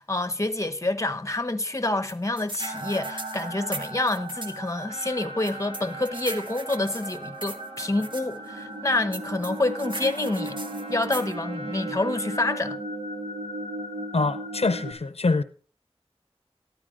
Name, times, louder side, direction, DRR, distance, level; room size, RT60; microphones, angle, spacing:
voice 1, 0.0-10.6 10.9-12.8, left 2 dB, 30° left, 0.9 m, -27 dB
sound 1, 2.1-4.6 5.4-8.2 9.1-11.3, right 2 dB, 50° right, 1.2 m, -38 dB
sound 2, 2.6-14.9, right 1 dB, 80° right, 4.7 m, -36 dB
Trumpet, 4.8-12.7, right 2 dB, 65° right, 5.4 m, -45 dB
voice 2, 14.1-15.4, left 3 dB, 75° left, 0.6 m, -24 dB
14.0 x 12.0 x 3.7 m
wide cardioid pair, 45°, 10 cm